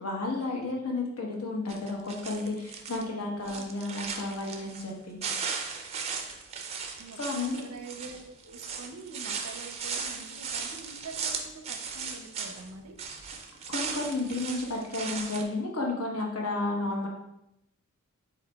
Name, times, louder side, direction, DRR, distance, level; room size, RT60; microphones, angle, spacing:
voice 1, 0.0-5.2 7.2-7.6 13.7-17.1, left 2 dB, 75° left, -1 dB, 1.1 m, -32 dB
sound 1, 1.7-3.0 3.4-4.9 5.2-12.7 13.0-15.4, right 5 dB, 30° right, 0.4 m, -37 dB
voice 2, 2.9-3.7 7.0-13.0, right 3 dB, 90° right, 6 dB, 0.6 m, -46 dB
5.8 x 4.0 x 2.3 m, 0.83 s
head